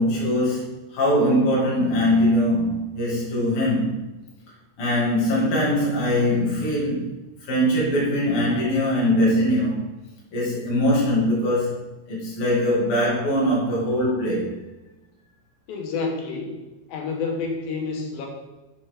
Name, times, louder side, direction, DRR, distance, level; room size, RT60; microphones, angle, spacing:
voice 1, 0.0-4.0 4.8-7.1 7.4-9.8 10.3-14.5, equal, 40° left, -6 dB, 3.0 m, -22 dB
voice 2, 15.7-16.6 16.9-18.3, left 4 dB, 80° left, 1 dB, 2.9 m, -29 dB
8.7 x 5.6 x 3.7 m, 1.1 s
omnidirectional pair, 4.2 m